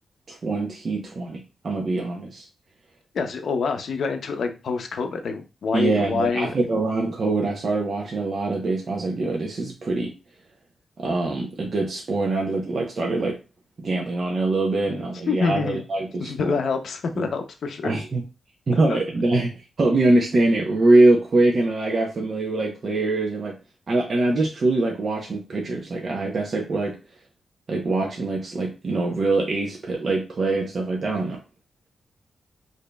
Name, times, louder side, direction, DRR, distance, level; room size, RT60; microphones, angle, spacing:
voice 1, 0.3-2.5 5.7-10.1 11.0-13.4 13.8-16.6 17.2-17.3 17.8-18.2 18.7-19.5 19.8-23.6 23.9-27.0 27.7-31.4, right 2 dB, 50° right, 0 dB, 0.7 m, -23 dB
voice 2, 3.1-6.5 15.3-15.8 16.2-17.9 18.9-19.0, left 5 dB, 70° left, 6 dB, 0.6 m, -26 dB
4.9 x 2.7 x 2.2 m, 0.31 s
cardioid pair, 75°, 0 cm